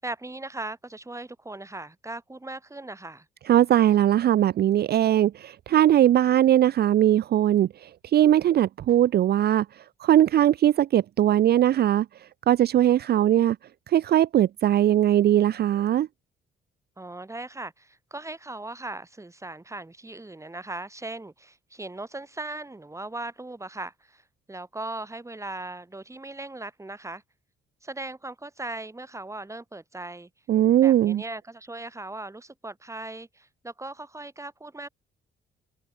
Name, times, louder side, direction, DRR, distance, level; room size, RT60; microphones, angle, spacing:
voice 1, 0.0-3.3 17.0-24.2 24.5-27.2 27.8-30.3 30.8-34.9, right 2 dB, 15° right, 5.3 m, -38 dB
voice 2, 3.5-13.6 13.9-16.1 30.5-31.2, right 12 dB, 55° right, 0.5 m, -20 dB
cardioid pair, 90°, 20 cm